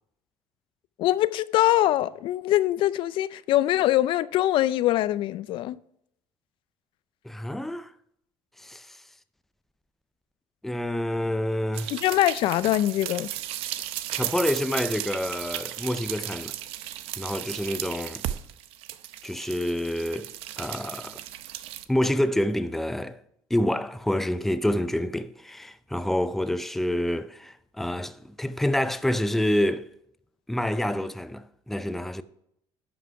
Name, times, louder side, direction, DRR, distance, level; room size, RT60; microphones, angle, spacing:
voice 1, 1.0-5.8 11.9-13.3, left 14 dB, 60° left, 0.4 m, -23 dB
voice 2, 7.2-7.9 8.6-9.0 10.6-12.0 14.1-16.5 17.2-18.2 19.2-20.3 20.6-21.2 21.9-23.2 23.5-29.9 30.5-32.2, left 1 dB, 5° left, 0.5 m, -27 dB
sound 1, 11.7-21.8, right 13 dB, 80° right, 0.7 m, -35 dB
11.0 x 6.0 x 4.7 m
cardioid pair, 130°, 10 cm